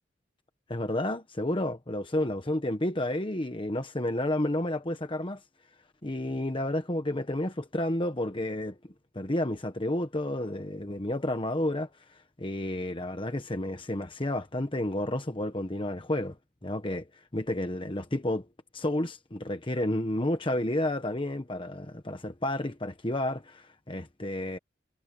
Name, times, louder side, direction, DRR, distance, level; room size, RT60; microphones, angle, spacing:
voice 1, 0.7-5.4 6.0-8.8 9.1-16.4 16.6-17.1 17.3-18.5 18.7-24.6, left 1 dB, 25° left, 1.2 m, -31 dB
head